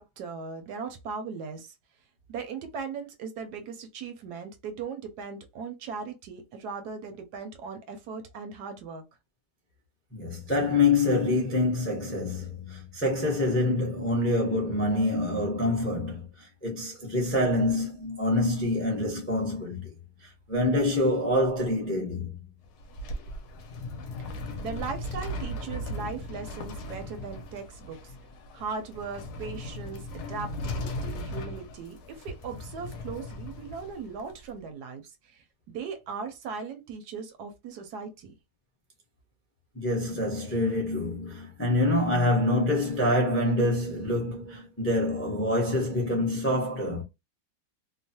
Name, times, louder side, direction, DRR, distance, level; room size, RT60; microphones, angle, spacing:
voice 1, 0.0-1.8 2.3-9.0 24.2-28.1 28.5-38.3, right 5 dB, 70° right, 1.0 m, -38 dB
voice 2, 10.1-19.9 20.2-22.3 39.7-47.0, left 2 dB, 20° left, 0.3 m, -26 dB
sound 1, 22.6-34.5, left 1 dB, 70° left, 1.1 m, -38 dB
3.0 x 2.0 x 2.7 m
omnidirectional pair, 2.0 m